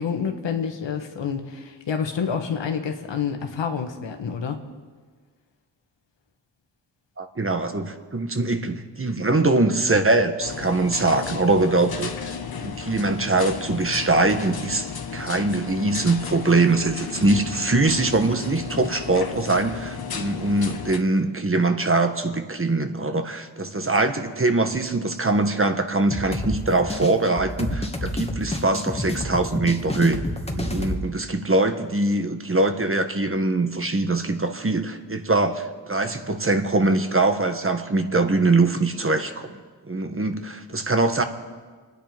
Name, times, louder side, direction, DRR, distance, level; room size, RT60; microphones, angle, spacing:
voice 1, 0.0-4.6, left 6 dB, 85° left, 4 dB, 1.7 m, -28 dB
voice 2, 7.2-12.3 12.6-30.2 30.5-39.6 39.9-41.2, right 2 dB, 30° right, 7 dB, 1.6 m, -22 dB
sound 1, 10.4-21.0, left 6 dB, 55° left, 1.4 m, -34 dB
sound 2, 26.1-31.0, left 1 dB, 15° left, 2.0 m, -29 dB
26.0 x 10.0 x 5.3 m, 1.5 s
cardioid pair, 50°, 43 cm